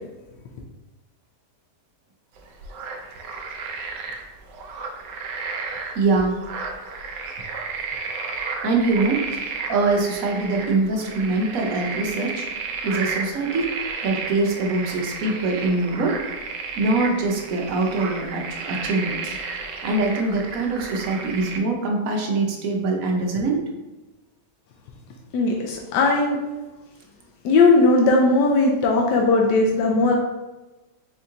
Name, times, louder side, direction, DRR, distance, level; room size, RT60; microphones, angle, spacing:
sound 1, 2.4-21.6, right 4 dB, 90° right, 1.3 m, -33 dB
voice 1, 5.9-6.4 8.6-12.5 12.8-13.7 14.0-16.2 16.8-19.4 19.8-23.6, right 3 dB, 65° right, 1 dB, 1.0 m, -23 dB
voice 2, 25.3-26.4 27.4-30.2, left 3 dB, 85° left, 0 dB, 1.2 m, -18 dB
4.4 x 2.7 x 3.7 m, 1.1 s
omnidirectional pair, 1.8 m